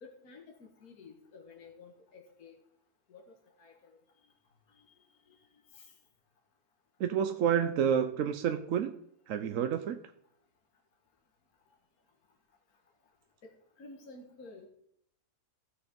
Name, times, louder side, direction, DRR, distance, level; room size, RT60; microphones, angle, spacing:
voice 1, 0.0-2.6 3.1-3.2 3.6-4.0 4.8-4.9 5.3-5.4 5.7-5.9 13.4-13.5 13.8-14.7, left 3 dB, 75° left, 1 dB, 2.0 m, -52 dB
voice 2, 7.0-8.9 9.3-10.0, right 8 dB, 65° right, 8 dB, 1.0 m, -29 dB
15.5 x 6.8 x 5.2 m, 0.71 s
omnidirectional pair, 1.6 m